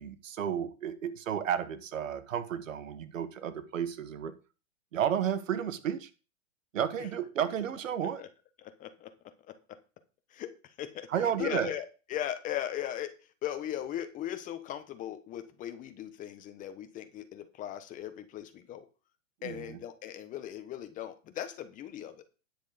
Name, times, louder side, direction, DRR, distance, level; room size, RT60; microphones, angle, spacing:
voice 1, 0.0-4.3 4.9-6.1 6.7-8.2 11.1-11.7 19.4-19.8, right 9 dB, 85° right, 11 dB, 1.6 m, -32 dB
voice 2, 8.6-9.1 9.5-9.8 10.3-13.2 13.4-18.9 19.4-22.2, left 11 dB, 20° left, 10 dB, 1.1 m, -38 dB
10.0 x 6.6 x 5.1 m, 0.34 s
hypercardioid pair, 150°, 38 cm